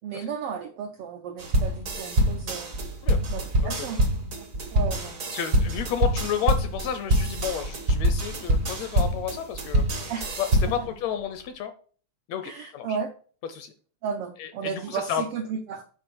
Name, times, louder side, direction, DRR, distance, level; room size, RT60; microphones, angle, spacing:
voice 1, 0.0-2.7 3.3-4.0 4.3-5.2 10.1-10.4 10.8-10.9 12.4-13.1 14.0-15.8, right 6 dB, 90° right, 5 dB, 1.2 m, -34 dB
sound 1, 1.4-10.9, right 1 dB, 70° right, 0.7 m, -25 dB
voice 2, 5.3-10.0 10.4-11.7 12.3-13.0 13.5-13.7 14.4-15.2, left 8 dB, 80° left, 9 dB, 1.6 m, -31 dB
7.7 x 5.0 x 4.6 m, 0.44 s
omnidirectional pair, 3.5 m